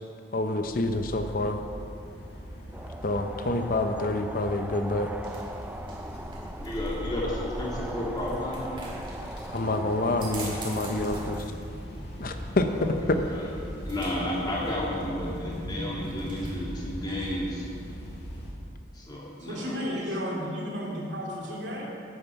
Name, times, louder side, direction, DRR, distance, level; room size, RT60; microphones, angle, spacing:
voice 1, 0.3-1.6 3.0-5.1 9.5-11.4 12.2-13.2, left 2 dB, 50° left, 6 dB, 0.6 m, -27 dB
sound 1, 0.6-18.5, equal, 70° left, 1.9 m, -39 dB
sound 2, 2.7-11.4, right 1 dB, 10° right, 0.3 m, -40 dB
sound 3, 5.1-17.5, right 3 dB, 25° right, 1.8 m, -48 dB
voice 2, 6.6-8.7 12.7-12.9 13.2-13.4 13.9-17.7 18.9-19.8 20.1-20.2, left 1 dB, 25° left, -5 dB, 2.1 m, -32 dB
voice 3, 19.4-21.8, equal, 90° right, -3 dB, 2.4 m, -33 dB
9.4 x 9.1 x 5.8 m, 2.6 s
head